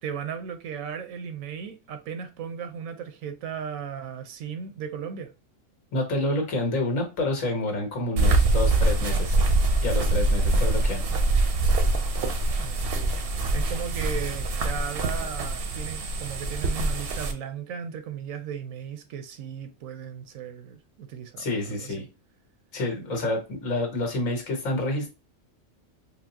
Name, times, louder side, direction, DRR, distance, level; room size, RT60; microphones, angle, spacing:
voice 1, 0.0-5.3 12.5-13.2 13.5-22.1, right 7 dB, 90° right, 1.1 m, -36 dB
voice 2, 5.9-9.4 9.8-11.1 21.4-22.1 22.7-25.1, left 1 dB, 75° left, 1.5 m, -28 dB
sound 1, 8.2-17.3, right 2 dB, 60° right, 0.7 m, -24 dB
4.3 x 2.0 x 2.7 m
omnidirectional pair, 1.4 m